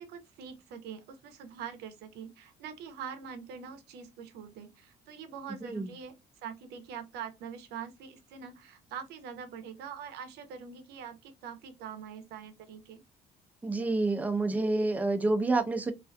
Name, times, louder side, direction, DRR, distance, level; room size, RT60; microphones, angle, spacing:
voice 1, 0.0-6.1 6.4-13.0, right 7 dB, 80° right, 0.6 m, -44 dB
voice 2, 13.6-15.9, right 2 dB, 10° right, 0.4 m, -28 dB
2.4 x 2.2 x 2.5 m
cardioid pair, 110°, 17 cm